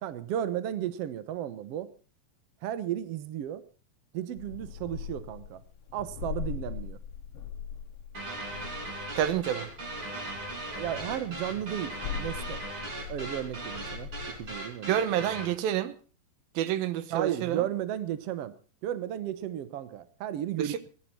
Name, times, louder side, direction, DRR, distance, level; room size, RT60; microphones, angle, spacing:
voice 1, 0.0-1.9 2.6-3.6 4.1-5.6 5.9-7.0 10.7-12.6 13.1-15.0 17.1-18.5 18.8-20.9, right 11 dB, 65° right, 1.5 m, -34 dB
sound 1, 4.4-14.6, left 7 dB, 60° left, 1.6 m, -41 dB
sound 2, 8.1-15.6, right 2 dB, 35° right, 3.8 m, -38 dB
voice 2, 9.2-9.7 14.9-16.0 16.6-17.7 20.6-20.9, right 11 dB, 85° right, 2.8 m, -28 dB
20.0 x 12.0 x 4.5 m
omnidirectional pair, 4.1 m